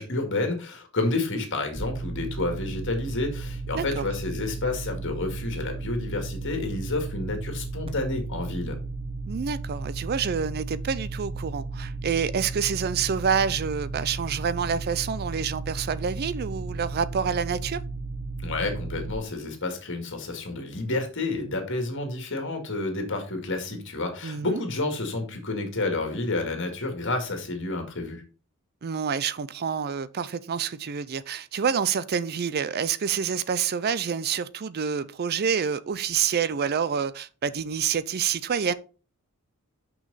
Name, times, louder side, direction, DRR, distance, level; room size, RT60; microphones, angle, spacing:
voice 1, 0.0-8.8 18.4-28.2, left 2 dB, 55° left, 2.1 m, -30 dB
sound 1, 1.8-19.2, right 3 dB, 25° right, 0.8 m, -34 dB
voice 2, 3.7-4.1 9.3-17.8 24.2-24.6 28.8-38.7, right 7 dB, 45° right, 0.4 m, -27 dB
6.2 x 6.0 x 4.0 m
head